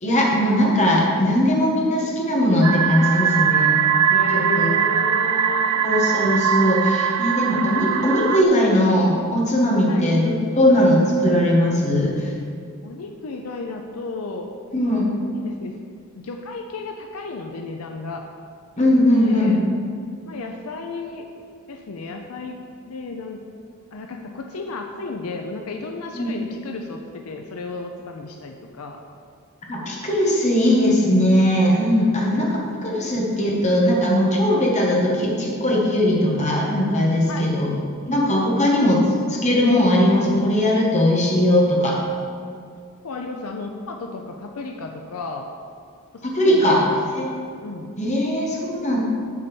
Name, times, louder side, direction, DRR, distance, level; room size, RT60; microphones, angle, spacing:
voice 1, 0.0-3.8 4.3-4.7 5.8-12.3 14.7-15.1 18.8-19.6 26.1-26.3 29.6-32.5 32.8-37.7 38.1-39.0 39.3-42.0 46.2-46.8 47.1-47.3 48.0-49.0, left 1 dB, 30° left, -3 dB, 1.6 m, -19 dB
sound 1, 2.6-8.4, right 8 dB, 80° right, 0.4 m, -21 dB
voice 2, 4.1-5.7 9.8-10.1 12.8-14.5 15.3-15.8 16.1-18.2 18.8-19.6 20.3-21.3 21.7-22.6 22.9-23.4 23.9-29.0 32.0-32.5 37.3-37.6 38.4-38.8 43.0-45.5 46.1-47.0 47.6-48.0, left 3 dB, 80° left, 3 dB, 0.6 m, -33 dB
8.6 x 4.1 x 7.0 m, 2.2 s
head